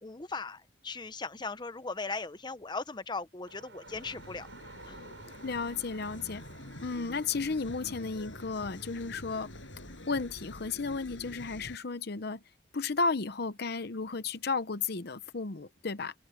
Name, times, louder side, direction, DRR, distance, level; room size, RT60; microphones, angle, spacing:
voice 1, 0.0-4.5 4.8-5.0 6.7-6.8, left 3 dB, 25° left, 0.8 m, -38 dB
sound 1, 3.4-10.5, right 3 dB, 75° right, 7.0 m, -54 dB
sound 2, 3.8-11.8, left 1 dB, 85° left, 6.5 m, -47 dB
voice 2, 5.4-6.4 6.8-9.5 9.9-12.4 12.7-16.1, left 4 dB, 55° left, 0.8 m, -33 dB
open air
head